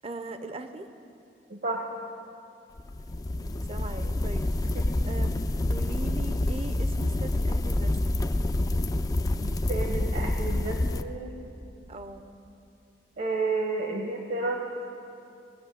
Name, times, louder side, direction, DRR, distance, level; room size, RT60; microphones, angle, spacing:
voice 1, 0.0-0.9 3.3-5.4 5.7-8.2 11.9-12.3, right 2 dB, 35° right, 9 dB, 0.7 m, -40 dB
voice 2, 1.5-1.8 4.6-5.0 9.4-11.4 13.2-14.6, right 3 dB, 60° right, 1 dB, 1.3 m, -31 dB
sound 1, 2.8-11.0, left 1 dB, 20° left, 0.4 m, -27 dB
19.5 x 6.9 x 9.3 m, 2.7 s
head